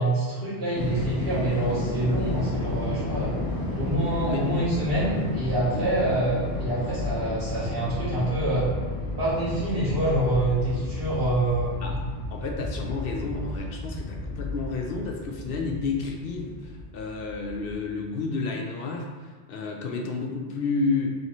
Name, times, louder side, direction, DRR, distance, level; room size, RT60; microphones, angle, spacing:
voice 1, 0.0-3.3 3.8-8.7 9.2-12.0, right 1 dB, 65° right, -11 dB, 1.3 m, -26 dB
sound 1, 0.7-17.9, left 2 dB, 25° left, 0.6 m, -32 dB
voice 2, 12.3-21.2, left 4 dB, 65° left, 1 dB, 0.7 m, -31 dB
3.2 x 3.0 x 4.2 m, 1.5 s
omnidirectional pair, 1.1 m